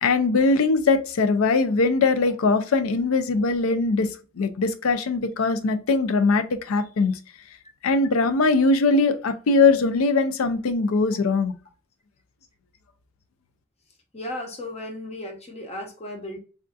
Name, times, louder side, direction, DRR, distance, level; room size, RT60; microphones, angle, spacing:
voice 1, 0.0-4.1 4.4-7.2 7.8-11.5, left 3 dB, 90° left, 10 dB, 0.4 m, -21 dB
voice 2, 14.1-16.4, left 1 dB, 30° left, 2 dB, 0.7 m, -35 dB
3.5 x 2.5 x 2.3 m, 0.36 s
head